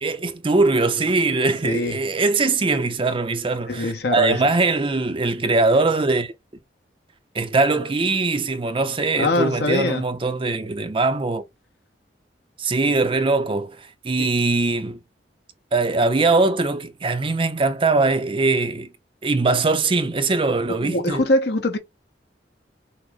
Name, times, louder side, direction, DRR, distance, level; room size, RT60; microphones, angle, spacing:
voice 1, 0.0-6.3 7.3-11.4 12.6-13.7 14.0-15.0 15.7-18.9 19.2-21.2, right 3 dB, 30° right, 0.6 m, -21 dB
voice 2, 1.6-2.0 3.7-4.4 9.2-10.1 14.2-14.3 20.8-21.8, left 2 dB, 65° left, 1.0 m, -23 dB
6.2 x 2.1 x 3.6 m
head